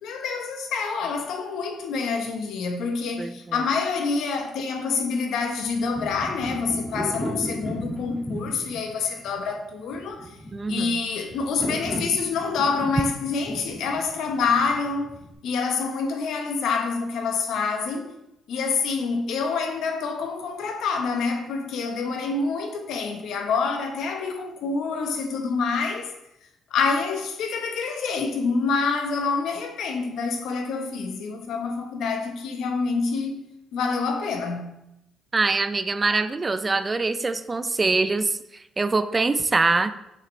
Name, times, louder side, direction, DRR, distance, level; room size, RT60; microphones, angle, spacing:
voice 1, 0.0-10.4 10.7-15.1 15.4-18.1 18.5-26.1 26.7-33.4 33.7-34.7, left 4 dB, 80° left, 1.0 m, -27 dB
voice 2, 3.2-3.6 10.5-11.0 35.3-39.9, right 3 dB, 25° right, 0.4 m, -24 dB
sound 1, 5.6-15.3, equal, ahead, 2.0 m, -35 dB
6.8 x 5.9 x 3.1 m
cardioid pair, 90°, 0 cm